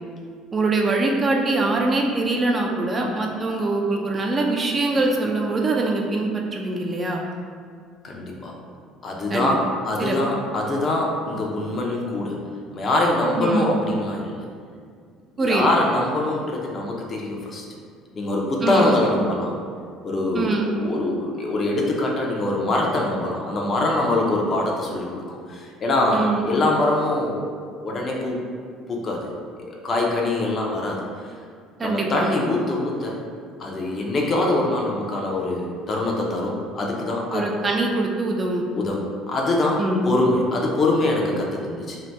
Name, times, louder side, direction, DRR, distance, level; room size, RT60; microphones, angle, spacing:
voice 1, 0.5-7.2 9.3-9.6 10.0-10.2 13.4-13.7 15.4-15.6 18.6-19.0 20.3-20.7 26.1-26.5 31.8-32.3 37.3-38.6 39.8-40.1, right 2 dB, 30° right, 0 dB, 0.3 m, -23 dB
voice 2, 8.0-8.5 9.0-12.4 12.7-14.5 15.4-17.6 18.1-19.6 20.0-27.5 27.8-28.4 28.9-29.3 29.7-31.3 31.8-33.2 33.6-37.5 38.7-42.0, left 2 dB, 40° left, -1 dB, 0.5 m, -24 dB
2.7 x 2.1 x 3.2 m, 2.1 s
supercardioid pair, 105°, 0 cm